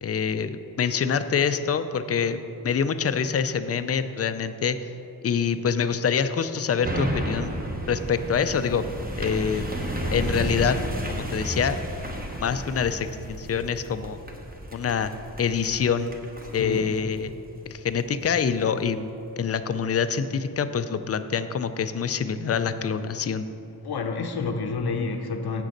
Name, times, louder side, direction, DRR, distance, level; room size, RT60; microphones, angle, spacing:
voice 1, 0.0-4.8 5.2-7.5 7.9-8.9 9.2-9.7 10.1-10.8 11.1-11.8 12.4-14.2 14.7-15.1 15.4-16.1 16.5-17.3 17.7-19.1 19.4-23.5, left 6 dB, 40° left, 0.4 m, -25 dB
sound 1, 6.8-18.3 18.7-18.8, right 1 dB, 25° right, 1.0 m, -33 dB
voice 2, 16.6-16.9 23.8-25.6, left 4 dB, 90° left, 0.8 m, -29 dB
8.3 x 6.4 x 6.5 m
wide cardioid pair, 110°, 37 cm